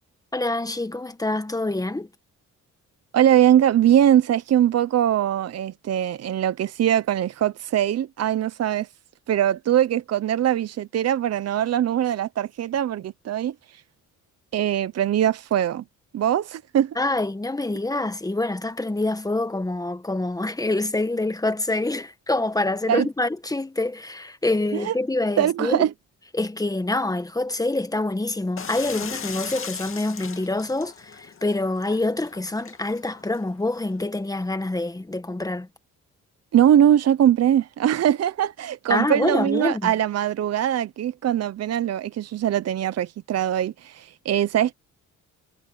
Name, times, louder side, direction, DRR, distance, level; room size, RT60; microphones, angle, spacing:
voice 1, 0.3-2.1 16.9-25.9 26.3-35.7 38.9-39.9, left 2 dB, 10° left, 1.6 m, -26 dB
voice 2, 3.1-8.9 9.3-13.5 14.5-15.8 16.1-17.0 22.9-23.1 24.7-24.9 25.4-25.9 36.5-44.7, right 10 dB, 55° right, 0.9 m, -21 dB
sound 1, 28.6-34.0, left 6 dB, 45° left, 2.5 m, -38 dB
cardioid pair, 90°, 30 cm